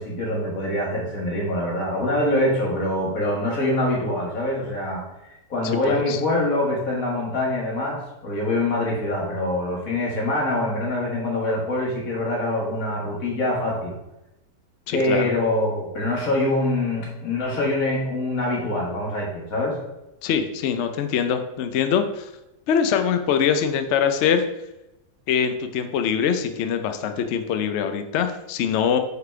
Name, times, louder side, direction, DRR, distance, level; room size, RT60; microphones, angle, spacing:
voice 1, 0.0-5.0 5.5-13.9 14.9-19.7, left 1 dB, 55° left, -2 dB, 2.1 m, -24 dB
voice 2, 5.9-6.2 14.9-15.3 20.2-22.3 22.7-24.4 25.3-29.0, left 7 dB, 75° left, 8 dB, 0.6 m, -23 dB
5.5 x 4.1 x 4.5 m, 0.93 s
omnidirectional pair, 1.8 m